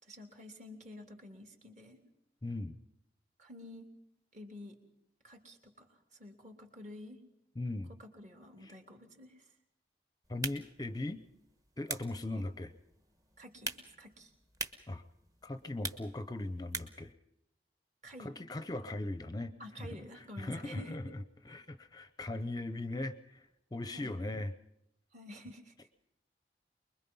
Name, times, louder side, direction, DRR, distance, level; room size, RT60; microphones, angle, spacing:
voice 1, 0.0-2.0 3.4-3.9 4.3-4.8 5.2-7.2 7.9-9.5 13.4-14.3 18.0-18.3 19.6-21.1 21.5-21.6 23.9-24.2 25.1-25.7, left 1 dB, 45° right, 4 dB, 3.0 m, -50 dB
voice 2, 2.4-2.8 7.6-7.9 8.6-8.7 10.3-11.2 11.8-12.7 14.9-15.0 15.4-17.1 18.2-24.5, left 2 dB, 20° left, 10 dB, 0.7 m, -39 dB
sound 1, 10.2-17.1, right 3 dB, 20° right, 1.2 m, -45 dB
24.0 x 22.0 x 5.5 m, 0.82 s
head